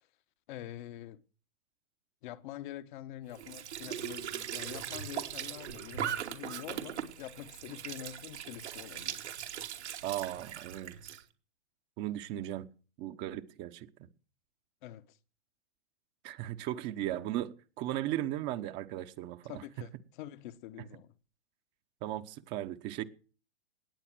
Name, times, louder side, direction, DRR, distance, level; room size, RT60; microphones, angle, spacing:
voice 1, 0.5-1.2 2.2-9.3 14.8-15.2 19.5-21.1, left 13 dB, 45° left, 1.3 m, -45 dB
Squeak / Sink (filling or washing) / Trickle dribble, 3.3-11.2, right 9 dB, 75° right, 2.7 m, -40 dB
voice 2, 10.0-11.2 12.0-12.7 13.0-13.9 16.2-19.6 22.0-23.0, right 13 dB, 30° right, 1.2 m, -37 dB
20.0 x 8.4 x 6.2 m
hypercardioid pair, 135°, 34 cm